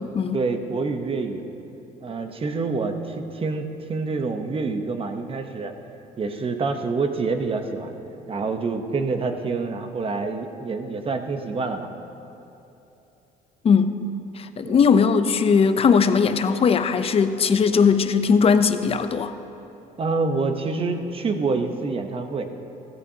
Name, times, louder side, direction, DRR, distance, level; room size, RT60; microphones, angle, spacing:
voice 1, 0.3-1.4 2.0-5.7 6.2-7.9 8.3-11.9 14.6-14.8 20.0-22.4, right 4 dB, 35° right, 6 dB, 0.9 m, -27 dB
voice 2, 14.4-19.3, left 6 dB, 35° left, 10 dB, 0.6 m, -19 dB
16.0 x 14.0 x 2.8 m, 2.9 s
cardioid pair, 110°, 17 cm